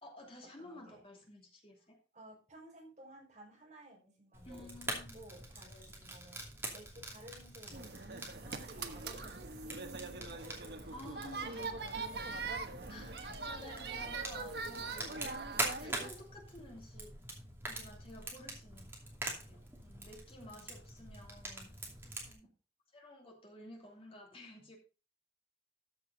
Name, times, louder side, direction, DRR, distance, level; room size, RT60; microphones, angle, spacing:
voice 1, 0.0-2.0 4.4-5.2 10.9-11.7 12.9-15.2 15.8-17.1 17.6-18.9 19.5-21.8 22.9-24.8, left 1 dB, 30° left, 1 dB, 2.8 m, -52 dB
voice 2, 0.6-1.0 2.1-4.7 5.1-6.4 6.7-9.7 11.3-11.8 12.1-12.6 13.3-13.4 22.2-22.5, right 1 dB, 40° right, -2 dB, 5.6 m, -56 dB
Fire, 4.3-22.3, right 2 dB, 15° right, 2.6 m, -45 dB
sound 1, 7.7-16.1, right 4 dB, 65° right, 1.2 m, -42 dB
13.5 x 6.9 x 4.0 m, 0.33 s
head